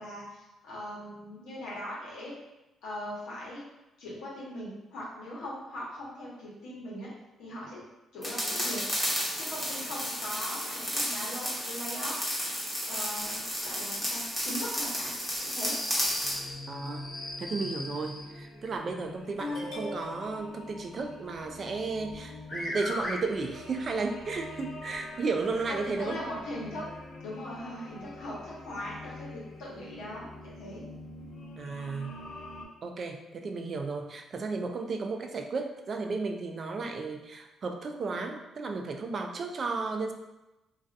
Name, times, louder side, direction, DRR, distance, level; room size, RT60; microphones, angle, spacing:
voice 1, 0.0-2.3 2.8-3.6 4.0-7.1 7.4-7.8 8.1-8.8 9.4-12.2 12.8-15.1 15.4-15.8 25.7-26.9 27.2-30.8, left 1 dB, 90° left, -6 dB, 0.9 m, -40 dB
sound 1, 8.2-16.4, equal, ahead, 0.7 m, -32 dB
sound 2, 15.3-18.3 19.4-20.4 22.1-22.2 22.5-23.1 24.3-24.4 24.9-25.0 25.8-25.9, left 1 dB, 65° left, 1.1 m, -38 dB
sound 3, 16.2-32.6, left 2 dB, 50° left, 0.4 m, -45 dB
voice 2, 16.7-17.1 17.4-26.2 31.6-32.2 32.8-40.1, right 4 dB, 50° right, 4 dB, 0.3 m, -34 dB
2.3 x 2.3 x 2.5 m, 0.98 s
cardioid pair, 90°, 0 cm